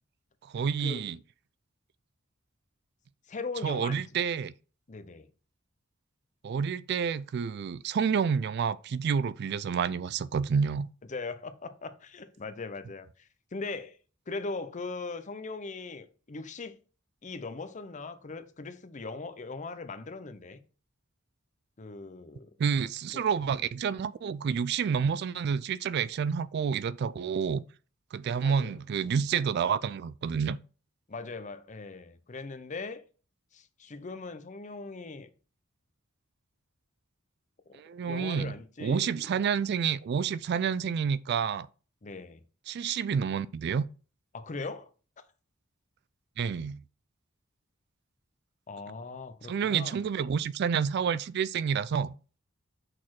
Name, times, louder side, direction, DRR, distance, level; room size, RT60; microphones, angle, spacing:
voice 1, 0.4-1.2 3.6-4.5 6.4-10.9 22.6-27.6 28.1-30.6 37.7-41.7 42.7-43.9 46.4-46.8 49.5-52.1, right 6 dB, 55° right, 0.3 m, -29 dB
voice 2, 3.3-4.0 4.9-5.3 11.1-14.0 14.3-16.8 17.2-20.6 21.8-22.5 23.1-23.3 28.4-28.8 31.1-33.0 33.5-35.3 38.0-39.3 42.0-42.4 44.3-44.9 48.7-50.0, left 3 dB, 40° left, 0.6 m, -40 dB
6.2 x 4.2 x 4.6 m
head